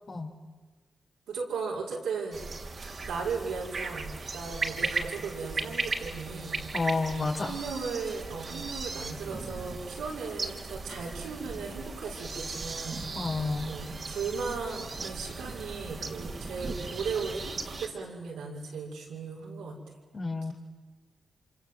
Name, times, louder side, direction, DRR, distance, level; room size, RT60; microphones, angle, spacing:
voice 1, 1.3-2.4 3.1-6.6 7.4-13.0 13.7-19.8, right 5 dB, 85° right, -3 dB, 5.7 m, -36 dB
sound 1, 2.3-17.9, right 3 dB, 55° right, 3.3 m, -37 dB
voice 2, 6.7-7.5 13.1-13.7 20.1-20.5, left 3 dB, 55° left, 2 dB, 4.9 m, -30 dB
26.5 x 26.5 x 7.9 m, 1.4 s
supercardioid pair, 45°, 0 cm